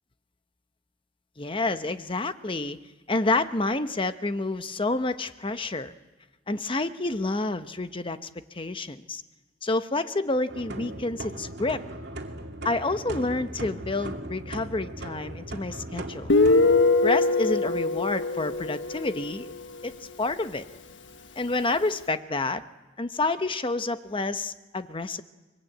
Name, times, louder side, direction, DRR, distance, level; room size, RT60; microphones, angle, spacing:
voice 1, 1.4-2.8 3.1-5.9 6.5-9.2 9.6-11.8 12.6-16.3 17.0-19.5 19.8-20.6 21.4-22.6 23.0-25.2, left 2 dB, 30° left, 10 dB, 0.9 m, -29 dB
sound 1, 10.5-16.7, right 1 dB, 65° right, 2.5 m, -38 dB
Guitar, 16.3-19.8, left 3 dB, 85° left, 1.3 m, -22 dB
24.0 x 21.5 x 9.0 m, 1.2 s
head